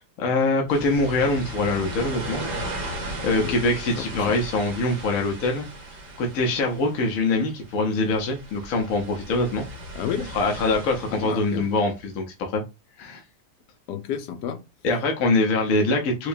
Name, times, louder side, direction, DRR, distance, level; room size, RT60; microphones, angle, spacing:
voice 1, 0.2-2.4 2.8-2.9 3.2-5.7 6.2-9.6 10.3-12.6 13.0-13.2 14.8-16.3, left 2 dB, 60° left, 1.0 m, -24 dB
sound 1, 0.7-11.9, right 1 dB, 80° right, 1.7 m, -36 dB
voice 2, 4.0-4.4 9.9-10.3 11.1-11.7 13.9-14.6 15.8-15.9, left 8 dB, 80° left, 1.2 m, -31 dB
4.7 x 2.1 x 2.5 m
omnidirectional pair, 1.8 m